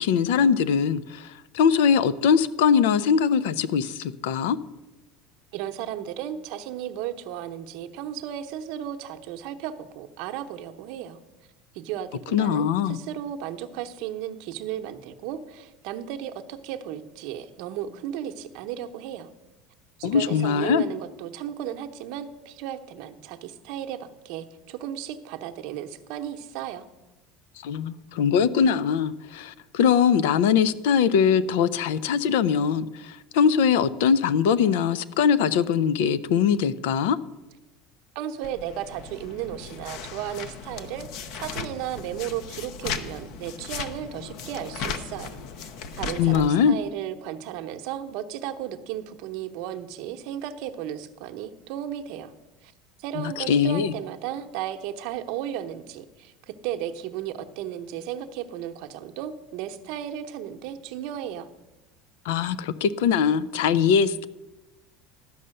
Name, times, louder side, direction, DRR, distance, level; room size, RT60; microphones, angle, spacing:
voice 1, 0.0-4.6 12.3-13.0 20.0-20.8 27.6-37.2 46.2-46.8 53.2-53.9 62.3-64.3, left 7 dB, 85° left, 17 dB, 0.5 m, -22 dB
voice 2, 5.5-11.2 11.7-19.3 20.0-26.8 38.1-41.1 41.3-45.7 46.0-52.3 52.6-52.7 53.0-56.3 56.6-61.5, right 10 dB, 60° right, 6 dB, 0.8 m, -34 dB
sound 1, 38.4-46.5, left 5 dB, 55° left, 0.8 m, -37 dB
12.0 x 5.5 x 7.6 m, 1.1 s
cardioid pair, 155°, 0 cm